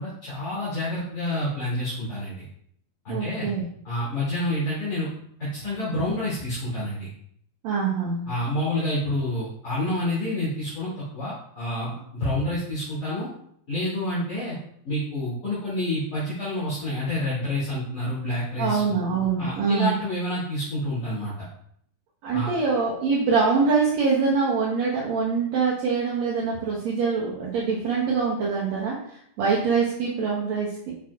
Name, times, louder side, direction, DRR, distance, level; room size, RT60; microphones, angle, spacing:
voice 1, 0.0-2.4 3.0-3.5 3.8-5.1 5.4-7.1 8.3-13.3 13.7-14.6 14.8-18.8 19.4-21.3 22.3-22.5, left 1 dB, 30° left, -12 dB, 2.5 m, -28 dB
voice 2, 3.1-3.6 7.6-8.2 18.6-20.0 22.2-30.9, right 5 dB, 75° right, -4 dB, 1.6 m, -24 dB
7.3 x 6.0 x 2.4 m, 0.67 s
omnidirectional pair, 4.4 m